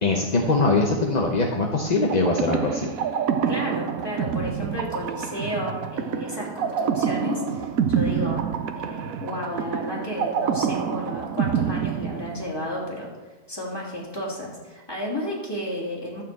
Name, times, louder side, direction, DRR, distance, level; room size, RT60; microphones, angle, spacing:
voice 1, 0.0-2.9, left 2 dB, 35° left, 0 dB, 0.7 m, -22 dB
sound 1, 2.1-12.8, right 7 dB, 65° right, 1.1 m, -27 dB
voice 2, 3.4-13.1 13.5-16.2, left 1 dB, 15° left, -4 dB, 2.6 m, -32 dB
12.5 x 4.4 x 7.5 m, 1.2 s
omnidirectional pair, 1.7 m